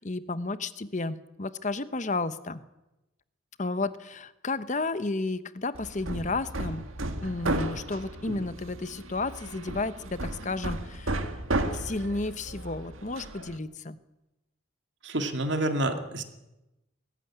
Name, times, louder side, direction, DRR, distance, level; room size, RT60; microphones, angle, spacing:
voice 1, 0.0-2.6 3.6-6.8 7.2-11.4 11.7-14.0, left 3 dB, 35° left, 14 dB, 0.9 m, -32 dB
Hammer, 5.7-13.6, right 2 dB, 75° right, 1.9 m, -34 dB
voice 2, 15.0-16.2, right 1 dB, 55° right, 7 dB, 2.2 m, -28 dB
20.5 x 14.5 x 9.8 m, 0.96 s
head